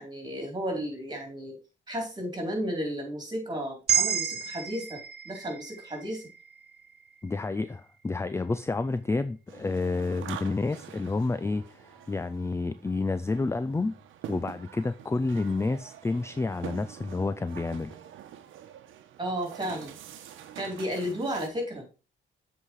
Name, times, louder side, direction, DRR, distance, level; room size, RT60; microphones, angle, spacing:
voice 1, 0.0-1.6 1.9-5.0 5.2-6.2 19.2-20.0 20.5-21.9, equal, 20° right, 4.1 m, -33 dB
sound 1, 3.9-8.1, right 9 dB, 55° right, 1.4 m, -32 dB
voice 2, 7.2-14.0 14.3-18.0, left 3 dB, 15° left, 0.4 m, -29 dB
sound 2, 9.5-21.5, right 10 dB, 85° right, 1.1 m, -46 dB
7.6 x 5.0 x 4.7 m
cardioid pair, 90°, 20 cm